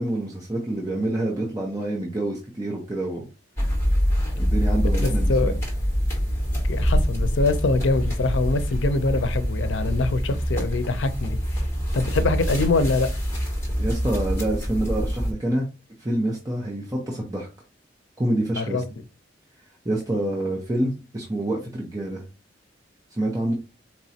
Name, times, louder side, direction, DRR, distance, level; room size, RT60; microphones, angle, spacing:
voice 1, 0.0-3.2 4.3-5.5 13.8-15.7 16.0-17.5 18.2-18.8 19.8-22.2 23.1-23.5, right 1 dB, 20° right, 0.9 m, -27 dB
sound 1, 3.6-15.3, equal, 15° left, 1.7 m, -25 dB
voice 2, 5.0-5.5 6.7-11.4 11.9-13.1 18.6-18.8, left 3 dB, 90° left, 0.5 m, -24 dB
4.6 x 3.0 x 2.8 m
head